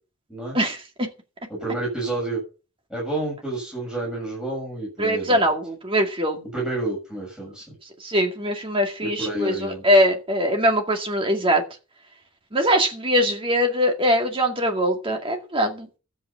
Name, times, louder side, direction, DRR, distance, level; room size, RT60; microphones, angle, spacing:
voice 1, 0.5-1.1 5.0-6.4 8.0-11.6 12.5-15.9, equal, 25° right, 2.2 m, -22 dB
voice 2, 1.5-2.4 2.9-5.5 6.5-7.7 9.0-9.8, right 2 dB, 5° right, 7.2 m, -29 dB
13.0 x 8.2 x 5.7 m
head